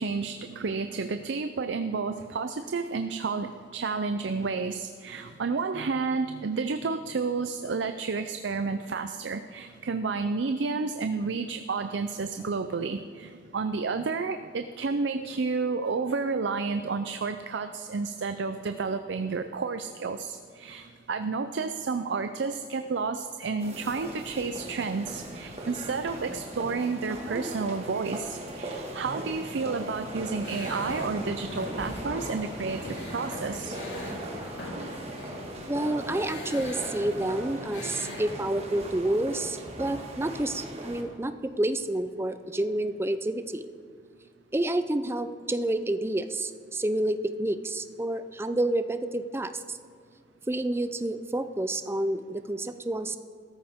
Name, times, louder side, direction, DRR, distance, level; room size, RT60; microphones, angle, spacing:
voice 1, 0.0-33.8, right 4 dB, 75° right, 9 dB, 0.5 m, -31 dB
sound 1, 23.6-41.0, right 1 dB, 35° right, 1.8 m, -39 dB
sound 2, 30.4-38.7, left 1 dB, 90° left, 3.8 m, -40 dB
voice 2, 35.6-43.6 44.5-49.8 50.5-53.2, right 1 dB, 15° right, 10 dB, 0.5 m, -29 dB
16.0 x 13.5 x 3.6 m, 2.1 s
head